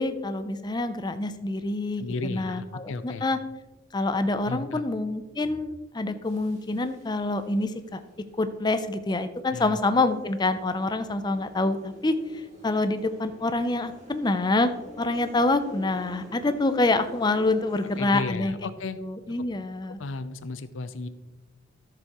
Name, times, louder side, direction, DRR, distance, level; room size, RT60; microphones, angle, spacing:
voice 1, 0.0-3.4 3.9-8.0 8.4-14.7 15.0-18.6 19.0-20.0, left 2 dB, 20° left, 10 dB, 0.5 m, -26 dB
voice 2, 2.0-3.3 4.5-4.8 9.5-9.8 18.0-19.0 20.0-21.1, left 3 dB, 90° left, 12 dB, 0.6 m, -34 dB
sound 1, 6.2-18.2, left 1 dB, 35° right, 2.3 m, -48 dB
13.0 x 6.8 x 3.0 m, 1.1 s
head